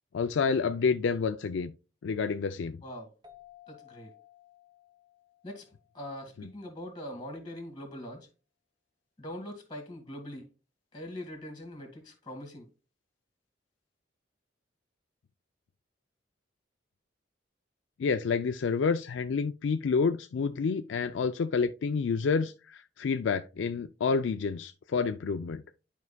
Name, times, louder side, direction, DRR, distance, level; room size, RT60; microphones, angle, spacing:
voice 1, 0.1-1.7 2.0-2.8 6.4-6.5 18.0-25.6, left 5 dB, 75° left, 0.4 m, -29 dB
sound 1, 3.2-6.5, left 11 dB, 20° right, 0.8 m, -57 dB
voice 2, 3.7-4.1 5.4-5.7 5.9-8.3 9.2-10.5 10.9-12.7, left 1 dB, 25° left, 1.7 m, -42 dB
11.0 x 4.6 x 2.2 m
head